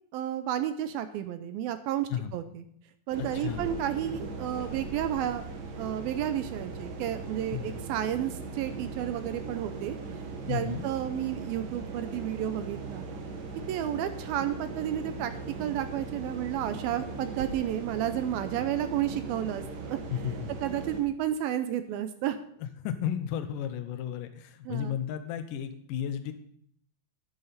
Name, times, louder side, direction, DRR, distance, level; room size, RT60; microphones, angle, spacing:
voice 1, 0.1-2.6 3.1-5.4 5.8-10.0 10.5-13.0 13.7-15.3 15.6-20.0 20.6-22.4 24.7-24.9, right 11 dB, 80° right, 10 dB, 2.4 m, -31 dB
sound 1, 3.1-21.0, right 4 dB, 60° right, 3.0 m, -39 dB
voice 2, 3.3-3.8 7.5-7.8 10.5-10.9 20.1-20.5 22.6-26.3, left 9 dB, 75° left, 8 dB, 2.2 m, -34 dB
12.0 x 10.5 x 4.2 m, 0.65 s
omnidirectional pair, 4.6 m